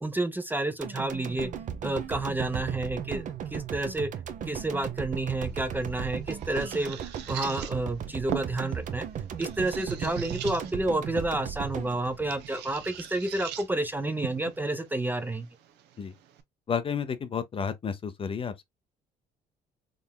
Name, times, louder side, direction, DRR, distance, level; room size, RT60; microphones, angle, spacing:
voice 1, 0.0-1.5 1.8-4.1 4.5-9.1 9.4-15.5, right 2 dB, 10° right, 0.6 m, -30 dB
sound 1, 0.8-13.0 13.4-13.5, right 8 dB, 50° right, 0.7 m, -36 dB
sound 2, 5.4-16.4, right 10 dB, 85° right, 0.9 m, -42 dB
voice 2, 16.7-18.6, left 6 dB, 30° left, 0.6 m, -31 dB
3.8 x 3.4 x 2.2 m
cardioid pair, 110°, 17 cm